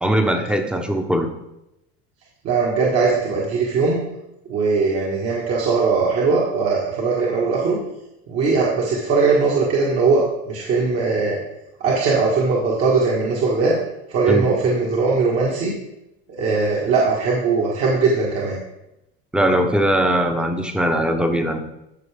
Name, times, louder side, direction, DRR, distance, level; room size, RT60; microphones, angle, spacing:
voice 1, 0.0-1.3 14.3-14.5 19.3-21.6, right 1 dB, 5° right, 6 dB, 0.9 m, -20 dB
voice 2, 2.4-4.0 4.5-7.8 8.3-11.4 11.8-13.7 14.1-15.7 16.3-18.6, right 4 dB, 50° right, -4 dB, 1.7 m, -20 dB
12.5 x 4.7 x 3.5 m, 0.88 s
supercardioid pair, 110°, 31 cm